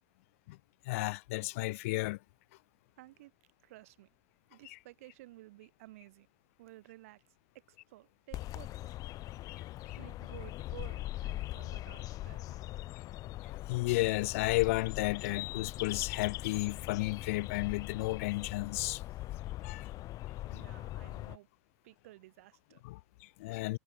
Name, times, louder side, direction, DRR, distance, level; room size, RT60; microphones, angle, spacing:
voice 1, 0.9-2.2 4.7-4.8 9.5-9.6 9.9-10.0 13.4-19.0 19.6-19.9 22.8-23.8, left 21 dB, 80° left, 0.8 m, -33 dB
voice 2, 3.0-3.3 3.6-4.1 4.5-6.3 6.6-7.2 7.7-9.0 10.0-12.6 19.1-19.2 20.4-21.5 21.8-22.8, right 18 dB, 85° right, 4.8 m, -54 dB
sound 1, 8.3-21.4, left 16 dB, 55° left, 2.5 m, -41 dB
supercardioid pair, 110°, 7 cm